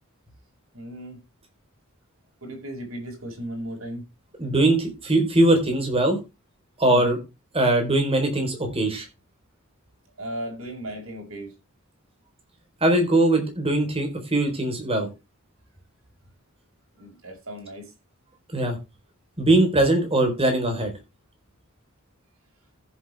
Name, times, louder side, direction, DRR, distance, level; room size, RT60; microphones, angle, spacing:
voice 1, 0.7-1.2 2.4-4.0 6.9-7.1 10.2-11.5 17.0-17.9, right 1 dB, 65° right, 6.1 m, -36 dB
voice 2, 4.4-6.2 6.8-7.2 7.5-9.0 12.8-15.1 18.5-18.8 19.4-20.9, right 1 dB, 25° right, 4.0 m, -21 dB
15.0 x 7.7 x 3.4 m
head